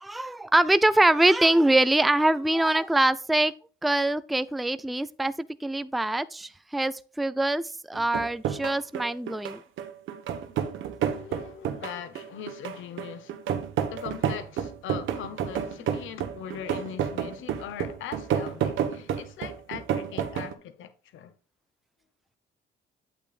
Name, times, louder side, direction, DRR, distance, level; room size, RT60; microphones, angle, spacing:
voice 1, 0.0-3.5 3.8-5.3 5.6-9.6, right 1 dB, ahead, 0.4 m, -23 dB
sound 1, 7.9-20.5, right 8 dB, 80° right, 1.2 m, -30 dB
voice 2, 11.0-13.4 13.9-21.3, left 9 dB, 80° left, 1.0 m, -41 dB
8.7 x 8.4 x 2.4 m
cardioid pair, 90°, 20 cm